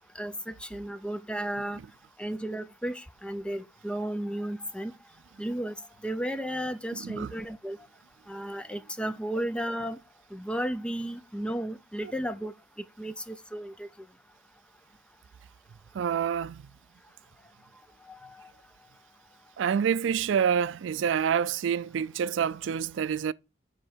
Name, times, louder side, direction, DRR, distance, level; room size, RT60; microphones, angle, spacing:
voice 1, 0.1-1.8 2.2-4.9 5.4-5.7 6.0-7.8 8.3-10.0 10.3-12.5 13.0-13.9 18.1-18.5, right 1 dB, 5° left, 0.5 m, -34 dB
voice 2, 6.9-7.3 12.0-12.1 15.9-16.7 19.6-23.3, right 7 dB, 80° right, 0.3 m, -27 dB
7.7 x 4.4 x 6.1 m
head